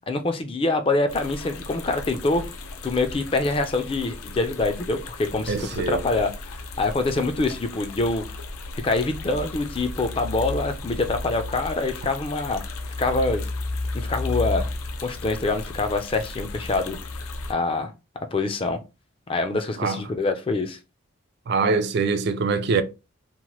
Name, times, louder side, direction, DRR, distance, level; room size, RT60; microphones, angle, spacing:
voice 1, 0.1-2.4 2.8-8.2 8.8-12.6 13.0-13.5 13.9-14.7 15.0-17.0 17.5-17.9 18.3-18.8 19.3-20.8, left 3 dB, 25° left, 0.3 m, -25 dB
sound 1, 1.1-17.5, left 2 dB, 80° left, 0.5 m, -34 dB
voice 2, 5.5-6.0 19.8-20.1 21.5-22.8, right 4 dB, 50° right, 0.3 m, -23 dB
2.9 x 2.1 x 3.0 m
head